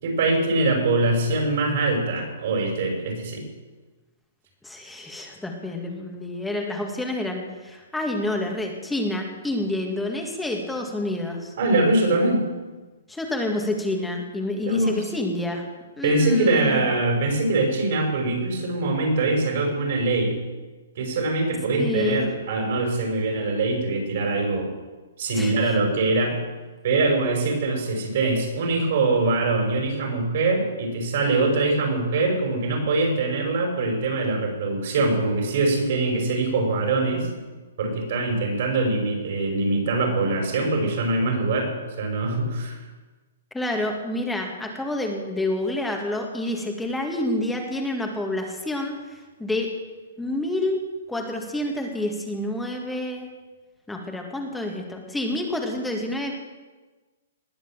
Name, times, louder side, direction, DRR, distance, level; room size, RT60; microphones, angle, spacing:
voice 1, 0.0-3.4 11.6-12.4 14.6-15.0 16.0-20.4 21.0-24.7 25.2-26.4 26.8-37.3 37.8-42.8, right 2 dB, 60° right, 2 dB, 5.6 m, -23 dB
voice 2, 4.6-11.5 13.1-15.7 16.0-16.9 21.8-22.3 25.3-25.8 43.5-49.7 50.2-50.8 51.1-53.3 53.9-56.3, left 1 dB, 5° left, 1 dB, 2.0 m, -28 dB
20.0 x 8.1 x 7.4 m, 1.3 s
hypercardioid pair, 145°, 0 cm